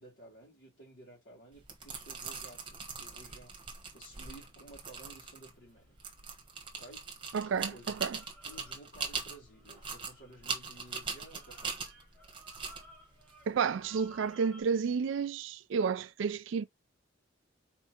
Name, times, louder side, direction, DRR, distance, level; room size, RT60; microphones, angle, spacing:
voice 1, 0.0-3.7 3.9-6.0 6.6-7.9 8.4-11.8, right 1 dB, 60° left, 2.7 m, -54 dB
sound 1, 1.5-14.3, right 5 dB, 25° right, 1.2 m, -42 dB
sound 2, 4.1-7.2 7.6-14.6, right 1 dB, 5° left, 1.5 m, -59 dB
voice 2, 7.3-8.2 13.5-16.6, right 6 dB, 75° right, 0.4 m, -31 dB
4.4 x 3.6 x 2.9 m
head